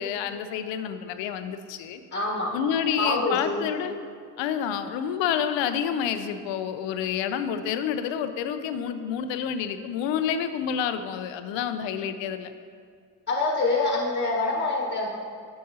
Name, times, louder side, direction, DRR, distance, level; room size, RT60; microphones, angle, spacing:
voice 1, 0.0-2.0 2.5-3.9 4.4-12.5, left 8 dB, 65° left, 9 dB, 0.6 m, -28 dB
voice 2, 2.1-2.5 3.0-3.7 13.3-15.2, left 3 dB, 20° left, -2 dB, 1.4 m, -25 dB
8.5 x 5.3 x 2.8 m, 2.1 s
hypercardioid pair, 60°, 48 cm